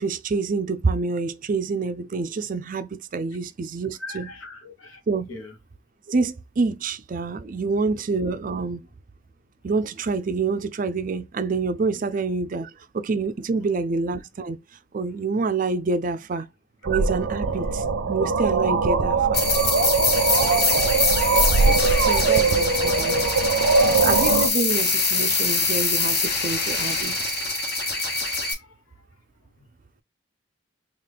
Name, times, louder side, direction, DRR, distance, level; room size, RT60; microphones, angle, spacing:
voice 1, 0.0-4.3 5.1-5.3 6.1-8.9 9.6-14.6 14.9-16.5 16.8-19.4 22.0-23.3 24.0-27.3, right 4 dB, 40° right, 0.4 m, -27 dB
voice 2, 4.0-5.0 5.3-5.5 16.3-16.4 22.1-22.6 23.8-24.1 25.7-26.3 27.0-27.3 28.5-28.7, left 2 dB, 80° left, 1.0 m, -43 dB
sound 1, 16.8-24.5, right 4 dB, 85° right, 0.6 m, -21 dB
sound 2, 19.3-28.5, left 3 dB, 55° left, 1.1 m, -24 dB
3.7 x 2.4 x 3.4 m
head